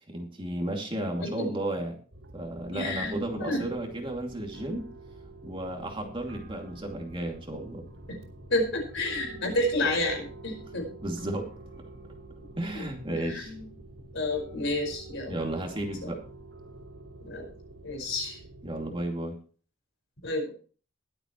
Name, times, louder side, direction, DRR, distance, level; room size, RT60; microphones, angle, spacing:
voice 1, 0.1-2.0 2.3-4.9 5.4-7.9 11.0-11.5 12.6-13.5 15.3-16.2 18.6-19.4, right 1 dB, 25° right, 1 dB, 2.5 m, -33 dB
sound 1, 2.1-19.0, right 2 dB, 70° right, 4.0 m, -47 dB
voice 2, 2.7-3.6 8.1-8.2 8.5-10.9 12.7-13.6 14.1-15.4 17.2-17.5 17.8-18.4 20.2-20.5, left 1 dB, 60° left, 3 dB, 5.2 m, -30 dB
22.0 x 8.1 x 3.1 m, 0.40 s
head